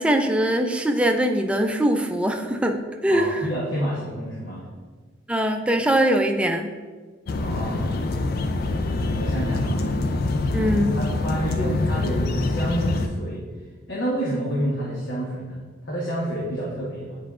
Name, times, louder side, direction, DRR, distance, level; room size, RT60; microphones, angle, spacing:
voice 1, 0.0-3.4 5.3-6.7 10.5-11.0, right 1 dB, 5° right, 4 dB, 0.4 m, -22 dB
voice 2, 3.1-4.6 7.3-8.0 8.9-9.9 11.0-13.4 13.9-17.2, equal, 80° left, -6 dB, 1.2 m, -29 dB
sound 1, 7.3-13.1, left 2 dB, 55° left, 0.4 m, -25 dB
9.6 x 4.6 x 2.4 m, 1.4 s
head